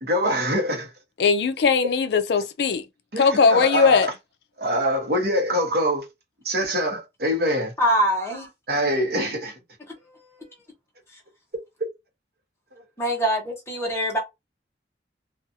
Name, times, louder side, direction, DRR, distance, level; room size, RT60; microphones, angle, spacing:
voice 1, 0.0-0.9 3.1-4.1 4.6-6.0 6.4-7.7 8.7-9.5, equal, 55° right, 0.9 m, -24 dB
voice 2, 1.2-2.8 3.2-4.1, left 5 dB, 60° left, 0.4 m, -19 dB
voice 3, 7.8-8.5 10.0-10.5 11.1-11.2 13.0-14.2, equal, 15° left, 0.9 m, -24 dB
2.5 x 2.4 x 2.6 m
head